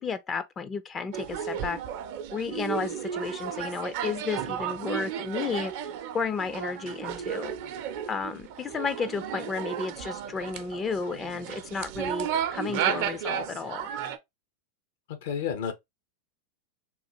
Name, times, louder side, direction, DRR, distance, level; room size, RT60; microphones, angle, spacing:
voice 1, 0.0-1.8 2.3-5.7 6.1-7.5 8.1-13.9, left 5 dB, 25° left, 0.4 m, -32 dB
sound 1, 1.1-14.2, right 9 dB, 60° right, 0.6 m, -33 dB
voice 2, 15.1-15.7, left 7 dB, 70° left, 0.8 m, -31 dB
3.7 x 2.4 x 2.8 m
hypercardioid pair, 100°, 0 cm